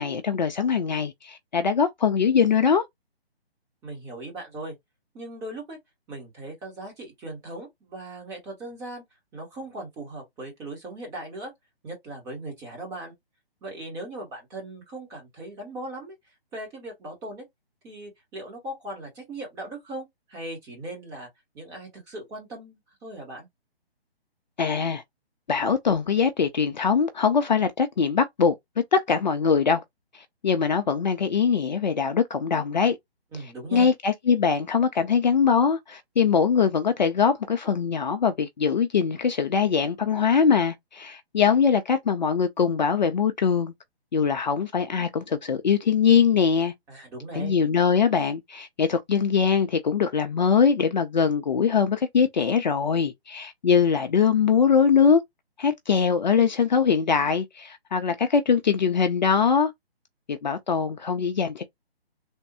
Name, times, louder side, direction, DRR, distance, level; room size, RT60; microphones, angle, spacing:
voice 1, 0.0-2.8 24.6-25.0 25.5-28.5 28.9-29.8 30.4-33.0 33.7-43.7 44.1-46.7 47.3-55.2 55.6-59.7 60.3-61.6, left 6 dB, 45° left, 0.5 m, -22 dB
voice 2, 3.8-4.7 5.1-5.8 6.1-9.0 9.3-11.5 11.8-13.1 13.6-16.1 16.5-17.4 17.8-21.3 21.5-23.5 33.3-33.9 46.9-47.5, right 2 dB, 10° right, 0.9 m, -38 dB
3.4 x 2.2 x 2.8 m
figure-of-eight pair, 145°, 31 cm